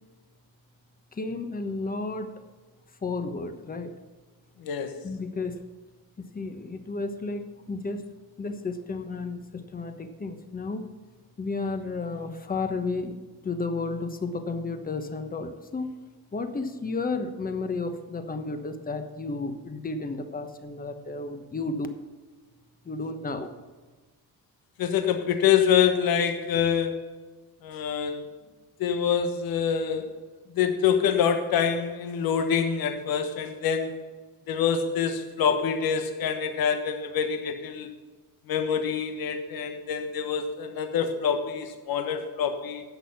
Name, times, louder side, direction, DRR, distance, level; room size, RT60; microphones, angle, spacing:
voice 1, 1.1-2.4 3.0-3.9 5.0-5.6 6.2-8.0 8.4-10.9 11.4-13.2 13.4-15.9 16.3-21.9 22.8-23.5, left 3 dB, 25° left, 7 dB, 1.1 m, -32 dB
voice 2, 4.6-5.0 24.8-27.2 27.6-28.2 28.8-30.1 30.5-34.0 34.5-37.9 38.5-42.8, left 7 dB, 65° left, 6 dB, 1.3 m, -26 dB
11.0 x 7.8 x 5.9 m, 1.3 s
cardioid pair, 120°, 38 cm